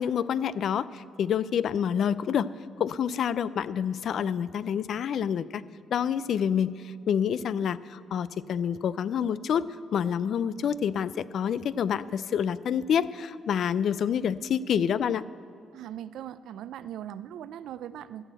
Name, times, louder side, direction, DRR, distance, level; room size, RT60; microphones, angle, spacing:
voice 1, 0.0-2.5 2.8-5.6 5.9-6.8 7.1-9.7 9.9-15.2, left 8 dB, 65° left, 17 dB, 0.3 m, -27 dB
voice 2, 15.7-18.3, right 10 dB, 80° right, 15 dB, 0.4 m, -40 dB
13.5 x 6.3 x 7.7 m, 2.4 s
cardioid pair, 90°, 0 cm